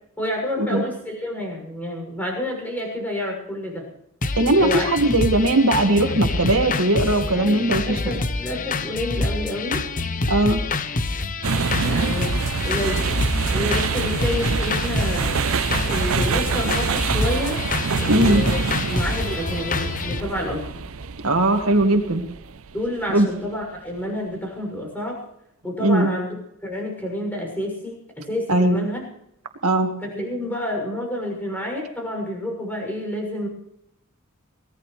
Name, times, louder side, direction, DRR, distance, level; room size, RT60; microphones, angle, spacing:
voice 1, 0.2-3.9 4.6-4.9 7.3-9.8 11.8-12.4 12.6-15.3 15.8-17.6 18.0-18.6 18.9-20.7 22.7-25.2 25.6-26.4 26.6-29.1 30.0-33.5, left 1 dB, 10° left, 0 dB, 6.8 m, -29 dB
sound 1, 4.2-20.2, left 3 dB, 40° left, 0.8 m, -26 dB
voice 2, 4.4-8.1 10.3-10.6 18.1-18.4 21.2-22.2 23.1-23.3 25.8-26.1 28.5-28.8 29.6-29.9, right 1 dB, 85° right, 5 dB, 2.0 m, -19 dB
sound 2, 11.4-23.5, right 5 dB, 70° right, 0.7 m, -26 dB
24.0 x 18.0 x 3.3 m, 0.79 s
head